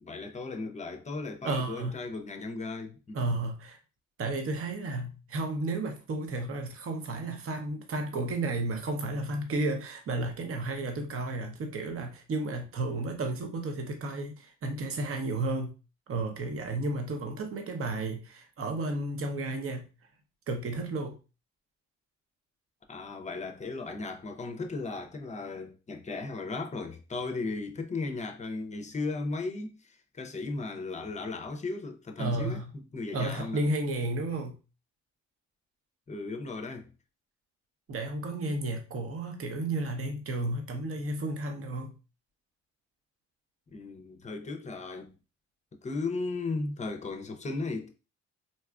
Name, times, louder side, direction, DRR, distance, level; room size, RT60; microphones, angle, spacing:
voice 1, 0.0-3.2 22.9-32.6 32.9-33.6 36.1-36.9 43.7-45.1 45.8-47.9, left 3 dB, 25° left, 0.6 m, -36 dB
voice 2, 1.4-2.0 3.1-3.8 4.2-15.7 16.1-19.9 20.5-21.2 32.2-32.7 33.1-34.6 37.9-41.9, right 2 dB, 45° right, 0.8 m, -32 dB
4.0 x 2.3 x 2.3 m
cardioid pair, 90°, 30 cm